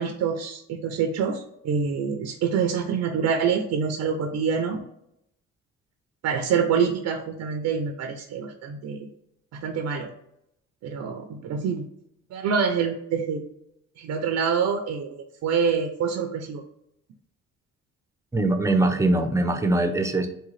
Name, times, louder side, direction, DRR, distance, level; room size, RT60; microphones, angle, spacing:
voice 1, 0.0-4.8 6.2-9.1 9.5-10.1 10.8-11.9 12.3-13.5 14.0-15.1 15.4-16.6, right 6 dB, 65° right, 4 dB, 0.5 m, -26 dB
voice 2, 18.3-20.3, right 2 dB, 10° right, 6 dB, 0.5 m, -22 dB
3.7 x 2.3 x 3.1 m, 0.77 s
cardioid pair, 90°, 30 cm